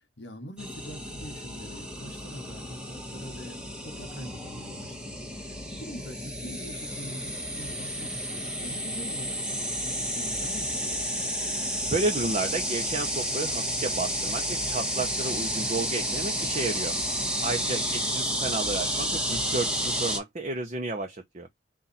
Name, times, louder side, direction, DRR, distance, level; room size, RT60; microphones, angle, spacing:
voice 1, 0.2-3.6 3.8-5.1 5.7-11.1 17.6-18.0, equal, 70° left, 1.4 m, -44 dB
sound 1, 0.6-20.2, equal, 5° right, 1.1 m, -31 dB
voice 2, 11.9-17.0 17.4-21.5, right 3 dB, 40° right, 0.7 m, -32 dB
4.1 x 2.5 x 4.1 m
head